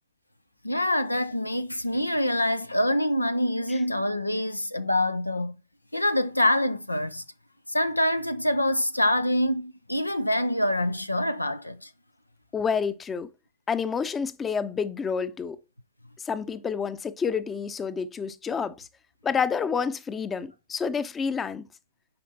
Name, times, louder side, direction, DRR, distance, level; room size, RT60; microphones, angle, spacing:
voice 1, 0.6-5.6 5.9-7.2 7.7-11.9, left 1 dB, 85° left, 0.4 m, -25 dB
voice 2, 12.5-13.3 13.7-15.6 16.2-18.9 19.2-21.7, left 6 dB, 20° left, 0.6 m, -29 dB
8.7 x 5.1 x 2.8 m
figure-of-eight pair, 90°, 0 cm